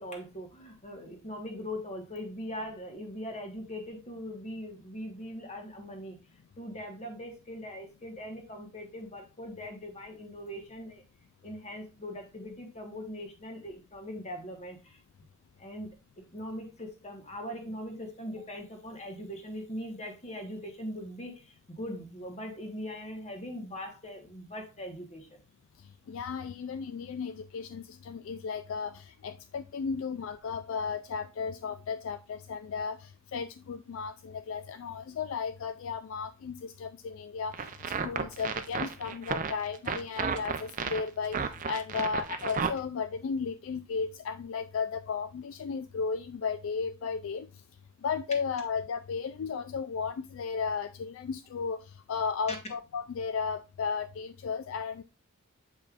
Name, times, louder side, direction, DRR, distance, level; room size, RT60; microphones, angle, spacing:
voice 1, 0.0-6.2 6.6-11.0 11.4-15.0 15.6-15.9 16.3-25.4, equal, 30° left, 1.3 m, -41 dB
voice 2, 26.1-37.7 38.0-47.5 48.0-55.0, left 5 dB, 65° left, 0.3 m, -34 dB
sound 1, 37.5-42.7, right 5 dB, 40° right, 0.5 m, -33 dB
7.4 x 5.3 x 2.4 m
head